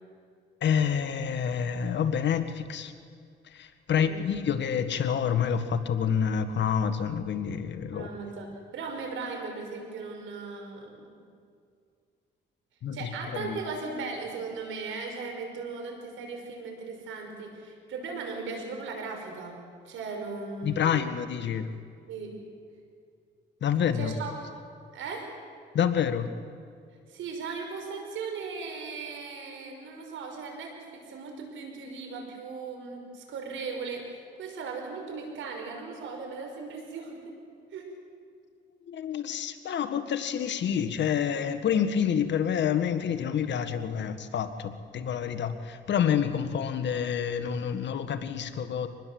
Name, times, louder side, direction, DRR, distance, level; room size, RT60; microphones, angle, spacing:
voice 1, 0.6-2.9 3.5-8.1 12.8-13.6 20.6-21.7 23.6-24.1 25.7-26.3 38.9-48.9, left 8 dB, 65° left, 10 dB, 1.6 m, -28 dB
voice 2, 7.9-11.1 12.9-19.6 19.9-21.1 22.1-22.4 23.9-24.3 24.9-25.3 27.1-37.3 37.7-37.9, right 4 dB, 80° right, 3 dB, 5.6 m, -38 dB
25.0 x 20.0 x 7.8 m, 2.2 s
cardioid pair, 90°, 20 cm